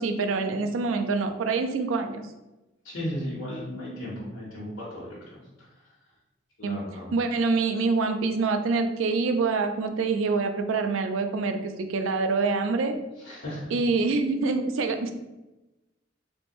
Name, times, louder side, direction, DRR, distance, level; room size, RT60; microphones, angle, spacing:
voice 1, 0.0-2.3 6.6-6.8 7.1-13.0 13.7-15.1, right 4 dB, 85° right, 7 dB, 0.4 m, -26 dB
voice 2, 2.8-5.4 6.6-7.1 13.2-13.7, equal, 85° left, -8 dB, 1.0 m, -35 dB
3.4 x 2.6 x 3.0 m, 1.0 s
head